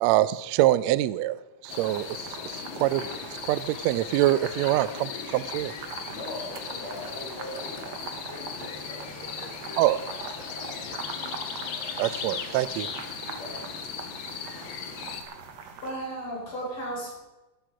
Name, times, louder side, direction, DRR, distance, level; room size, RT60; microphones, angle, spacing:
voice 1, 0.0-3.1 3.4-5.7 9.8-10.0 12.0-12.9, right 15 dB, 90° right, 16 dB, 1.5 m, -25 dB
sound 1, 1.6-15.9, right 6 dB, 65° right, 2.2 m, -43 dB
sound 2, 1.7-15.2, left 6 dB, 60° left, 1.3 m, -37 dB
voice 2, 6.1-10.2 10.5-11.0 13.2-13.6, left 2 dB, 85° left, -2 dB, 5.9 m, -42 dB
voice 3, 15.3-17.2, right 1 dB, 40° left, -4 dB, 6.0 m, -35 dB
12.5 x 12.0 x 5.0 m, 1.1 s
omnidirectional pair, 3.7 m